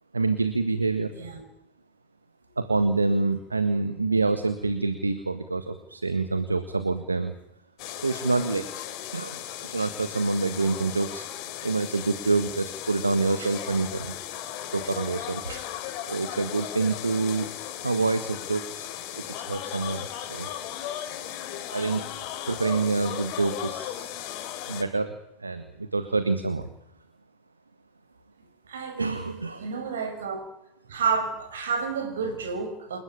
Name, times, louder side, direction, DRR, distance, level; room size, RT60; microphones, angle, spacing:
voice 1, 0.1-1.2 2.6-7.3 8.0-8.7 9.1-11.2 11.6-14.1 14.7-15.4 16.1-17.5 17.8-22.1 22.5-24.4 24.7-26.7 29.0-29.6, right 3 dB, 85° right, 10 dB, 1.7 m, -27 dB
sound 1, 7.8-24.8, left 12 dB, 50° left, 3.3 m, -36 dB
voice 2, 28.7-29.2 29.6-30.5 30.9-33.0, right 5 dB, 70° right, 7 dB, 6.2 m, -30 dB
28.5 x 16.0 x 8.8 m, 0.81 s
figure-of-eight pair, 85°, 0 cm